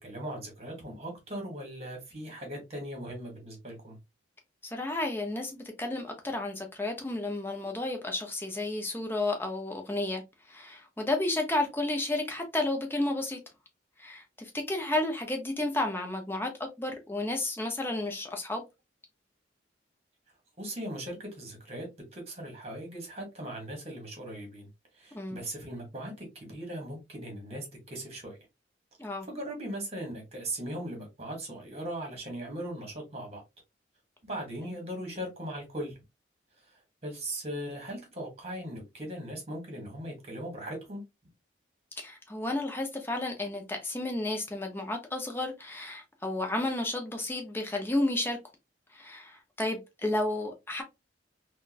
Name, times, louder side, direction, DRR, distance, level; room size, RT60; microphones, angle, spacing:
voice 1, 0.0-4.0 20.6-24.7 25.0-28.4 29.2-33.4 34.2-36.0 36.7-41.0, right 1 dB, 35° right, 1.3 m, -39 dB
voice 2, 4.6-10.2 10.5-13.4 14.0-18.6 25.1-25.4 29.0-29.3 34.6-34.8 42.0-48.4 48.9-50.8, left 2 dB, 10° left, 0.7 m, -32 dB
3.7 x 2.3 x 2.5 m
head